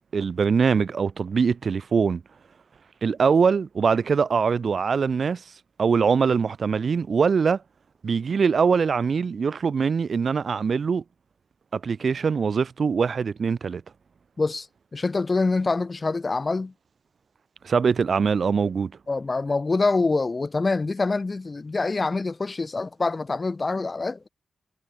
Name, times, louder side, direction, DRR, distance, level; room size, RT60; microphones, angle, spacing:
voice 1, 0.1-2.2 3.0-5.4 5.8-7.6 8.0-11.0 11.7-13.8 17.6-18.9, right 5 dB, 60° right, 3.5 m, -22 dB
voice 2, 14.9-16.7 19.1-24.3, left 3 dB, 35° left, 4.5 m, -25 dB
cardioid pair, 85°, 0 cm